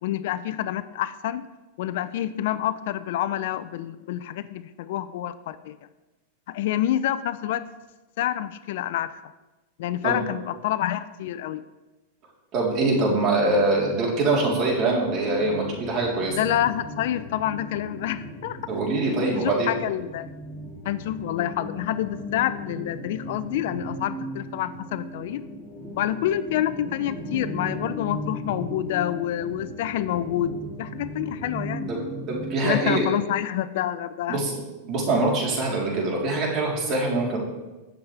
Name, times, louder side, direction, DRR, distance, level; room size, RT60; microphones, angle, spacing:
voice 1, 0.0-1.5 1.8-5.8 6.5-7.6 8.2-9.1 9.8-11.6 16.4-18.6 19.1-20.3 20.8-25.4 26.0-31.9 32.6-34.4, left 12 dB, 65° left, 14 dB, 0.5 m, -27 dB
voice 2, 12.5-16.4 18.7-19.7 31.9-32.0 32.3-33.1 34.3-34.6 34.8-37.4, right 2 dB, 40° right, -2 dB, 3.7 m, -24 dB
sound 1, 14.4-33.0, equal, 5° right, 2.2 m, -37 dB
19.5 x 7.2 x 3.4 m, 1.1 s
supercardioid pair, 135°, 0 cm